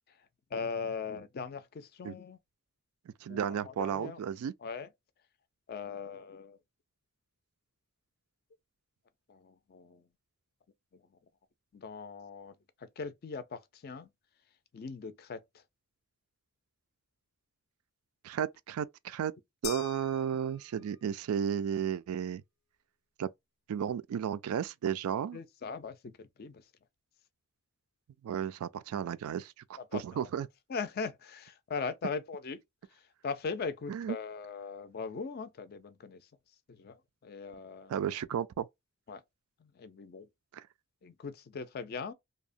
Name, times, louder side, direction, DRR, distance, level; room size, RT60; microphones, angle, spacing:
voice 1, 0.5-2.4 3.3-4.2 4.6-4.9 5.7-6.6 9.3-10.0 10.9-11.0 11.7-14.1 14.7-15.6 20.1-20.3 25.3-26.6 29.8-30.3 30.7-32.6 32.9-36.3 36.7-37.9 39.1-39.2 39.6-40.3 41.0-42.1, left 5 dB, 45° left, 0.4 m, -40 dB
voice 2, 3.2-4.5 18.2-19.3 19.6-22.4 23.2-23.3 23.7-25.4 28.2-30.5 33.9-34.2 37.9-38.7 40.5-40.6, right 8 dB, 90° right, 0.3 m, -33 dB
sound 1, 19.6-21.1, left 9 dB, 85° left, 0.6 m, -44 dB
2.8 x 2.0 x 2.5 m
head